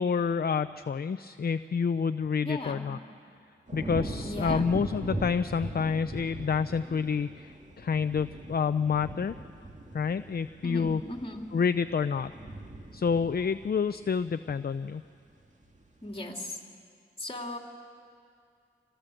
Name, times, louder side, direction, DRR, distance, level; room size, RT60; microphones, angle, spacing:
voice 1, 0.0-3.0 3.7-9.4 9.9-11.0 11.5-12.3 12.9-15.0, left 6 dB, 50° left, 12 dB, 0.5 m, -28 dB
voice 2, 2.4-2.9 4.2-4.7 10.6-11.5 16.0-16.6 17.2-17.6, left 1 dB, 25° left, 1 dB, 2.9 m, -37 dB
sound 1, 3.7-15.0 15.4-15.9, right 1 dB, 35° right, 2.3 m, -40 dB
26.5 x 19.5 x 7.8 m, 2.3 s
wide cardioid pair, 65°, 21 cm